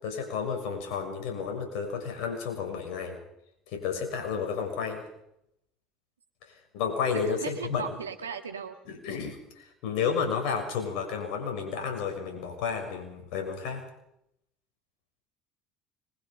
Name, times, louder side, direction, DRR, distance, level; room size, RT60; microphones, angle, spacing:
voice 1, 0.0-3.2 3.7-5.0 6.7-7.8 8.9-13.8, left 6 dB, 65° left, 4 dB, 6.6 m, -31 dB
voice 2, 7.1-8.8, right 7 dB, 90° right, 7 dB, 2.1 m, -37 dB
25.5 x 22.0 x 5.2 m, 0.79 s
hypercardioid pair, 65°, 0 cm